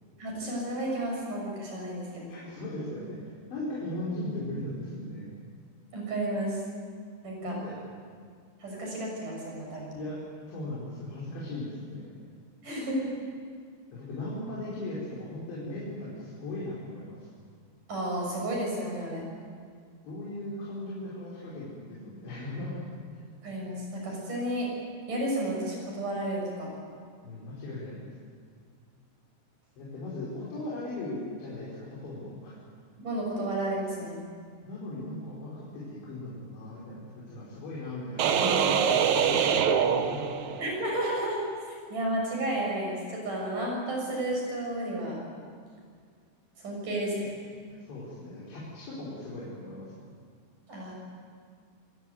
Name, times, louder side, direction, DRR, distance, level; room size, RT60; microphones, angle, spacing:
voice 1, 0.2-2.3 5.9-6.6 7.2-7.6 8.6-9.9 12.6-13.1 17.9-19.2 23.4-24.7 25.1-26.7 33.0-34.2 40.6-41.4 41.9-45.2 46.6-47.3 50.7-50.9, right 1 dB, 45° right, -1 dB, 8.3 m, -32 dB
voice 2, 2.3-5.3 7.4-7.9 10.0-10.2 10.5-12.2 13.9-17.3 20.0-22.8 27.2-28.1 29.8-32.6 34.7-40.6 47.7-50.1, left 1 dB, 75° left, -7 dB, 7.2 m, -38 dB
sound 1, 38.2-40.8, right 7 dB, 90° right, 1.6 m, -24 dB
27.0 x 17.0 x 9.4 m, 2.1 s
omnidirectional pair, 5.2 m